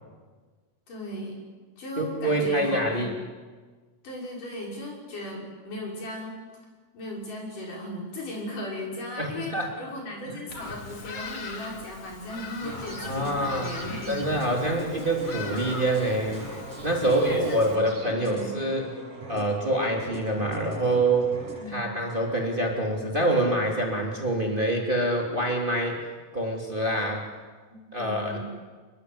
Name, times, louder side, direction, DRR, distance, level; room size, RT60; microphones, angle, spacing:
voice 1, 0.9-1.4 1.8-3.1 4.0-6.4 6.9-14.1 17.0-18.6 21.6-21.9 27.7-28.4, left 1 dB, 75° left, -2 dB, 7.6 m, -37 dB
voice 2, 2.0-3.1 9.2-9.7 10.3-10.4 13.0-13.7 14.1-16.5 16.8-18.8 19.3-21.3 21.6-26.0 26.3-27.2 27.9-28.4, right 1 dB, 15° right, 0 dB, 3.0 m, -26 dB
Bird vocalization bird call bird song, 10.5-17.8, left 4 dB, 45° left, 2.9 m, -41 dB
sound 1, 12.6-21.7, right 1 dB, 70° right, 8.6 m, -40 dB
29.0 x 21.0 x 8.1 m, 1.4 s
omnidirectional pair, 3.7 m